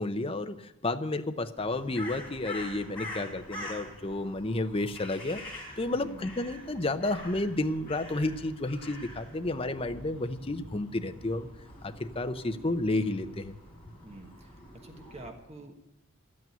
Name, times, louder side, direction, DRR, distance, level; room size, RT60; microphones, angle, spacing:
voice 1, 0.0-5.4 5.8-11.5 11.8-13.6, left 2 dB, 30° left, 8 dB, 0.7 m, -31 dB
Crow, 1.6-15.3, left 1 dB, 5° left, 4.6 m, -45 dB
voice 2, 5.9-6.3 14.0-14.5 14.8-15.8, right 2 dB, 30° right, 4 dB, 1.3 m, -47 dB
12.0 x 8.7 x 9.3 m, 0.90 s
head